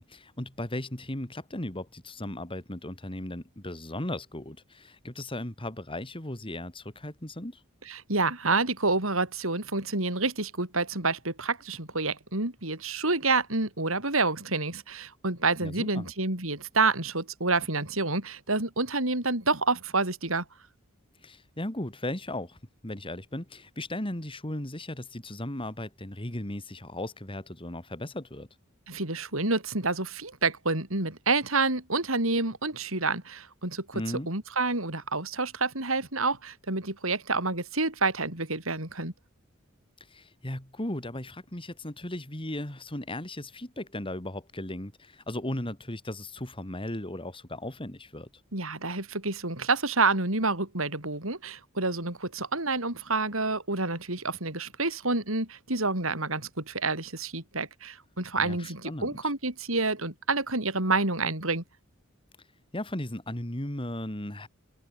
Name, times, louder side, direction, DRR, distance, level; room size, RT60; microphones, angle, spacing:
voice 1, 0.0-7.6 15.6-16.1 21.2-22.6 22.8-28.5 33.9-34.3 40.1-48.3 58.4-59.1 62.7-64.5, left 1 dB, 25° left, 3.4 m, -36 dB
voice 2, 7.9-20.4 28.9-34.0 34.3-39.1 48.5-61.6, right 3 dB, 70° right, 6.0 m, -28 dB
head